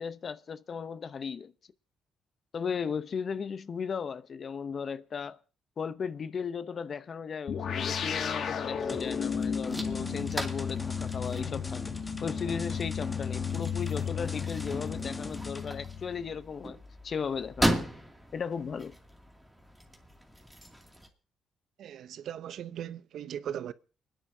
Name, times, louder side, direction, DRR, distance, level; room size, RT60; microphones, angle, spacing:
voice 1, 0.0-1.5 2.5-5.4 5.8-11.9 12.2-17.9 18.3-18.9, left 6 dB, 50° left, 0.7 m, -36 dB
sound 1, 7.5-16.3, left 7 dB, 65° left, 1.2 m, -34 dB
sound 2, 8.8-21.1, equal, ahead, 2.3 m, -38 dB
sound 3, 8.9-15.7, left 2 dB, 20° left, 1.1 m, -41 dB
voice 2, 21.8-23.7, right 10 dB, 70° right, 0.6 m, -38 dB
30.0 x 10.0 x 2.7 m
cardioid pair, 90°, 0 cm